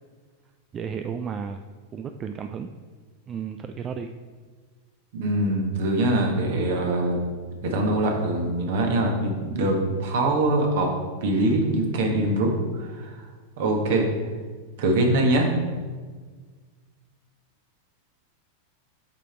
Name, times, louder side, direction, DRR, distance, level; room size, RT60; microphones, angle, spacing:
voice 1, 0.7-1.6 1.9-2.7 3.3-4.1, right 7 dB, 25° right, 7 dB, 0.4 m, -33 dB
voice 2, 5.1-7.2 7.6-10.9 11.2-13.3 13.6-14.1 14.8-15.5, right 1 dB, 55° right, 2 dB, 1.5 m, -23 dB
8.4 x 5.1 x 4.4 m, 1.5 s
figure-of-eight pair, 90°, 0 cm